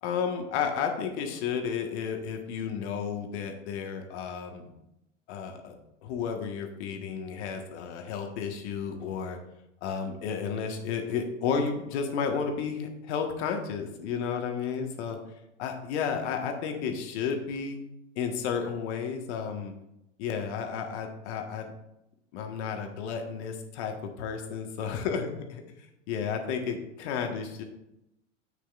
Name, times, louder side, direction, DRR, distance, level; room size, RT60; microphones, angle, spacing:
voice 1, 0.0-4.7 5.3-5.7 6.0-9.4 9.8-15.2 15.6-17.8 18.1-19.7 20.2-21.7 22.3-25.6 26.1-27.6, left 6 dB, 60° left, 4 dB, 1.5 m, -32 dB
10.0 x 8.2 x 2.5 m, 0.86 s
hypercardioid pair, 90°, 38 cm